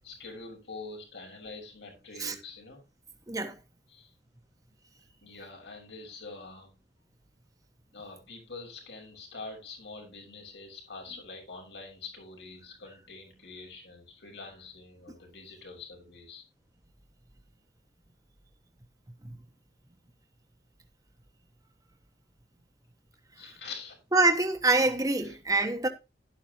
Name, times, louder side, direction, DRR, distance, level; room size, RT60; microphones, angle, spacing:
voice 1, 0.0-2.8 3.9-4.1 5.2-6.8 7.9-16.4 23.4-24.0 25.2-25.4, left 3 dB, 75° left, 6.5 m, -45 dB
voice 2, 24.1-25.9, right 2 dB, 20° right, 1.2 m, -25 dB
11.5 x 11.5 x 3.0 m
head